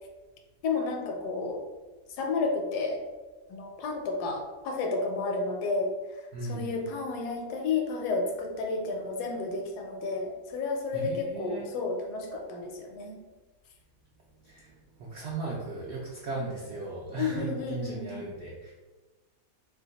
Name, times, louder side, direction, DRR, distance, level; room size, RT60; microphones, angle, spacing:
voice 1, 0.6-1.6 2.2-3.0 3.5-5.9 6.4-13.2 17.2-18.2, left 3 dB, 80° left, 3 dB, 1.1 m, -31 dB
voice 2, 6.3-6.8 10.9-11.7 14.4-18.7, right 3 dB, 75° right, -4 dB, 0.6 m, -37 dB
2.8 x 2.2 x 3.8 m, 1.2 s
omnidirectional pair, 1.7 m